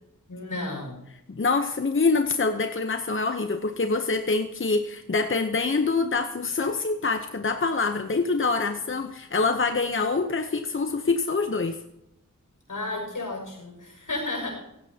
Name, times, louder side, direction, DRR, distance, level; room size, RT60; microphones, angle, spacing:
voice 1, 0.3-1.1 12.7-14.5, left 2 dB, 80° left, 0 dB, 6.4 m, -33 dB
voice 2, 1.3-11.8, left 4 dB, 40° left, 6 dB, 0.9 m, -25 dB
16.5 x 16.0 x 2.9 m, 0.84 s
wide cardioid pair, 75°, 32 cm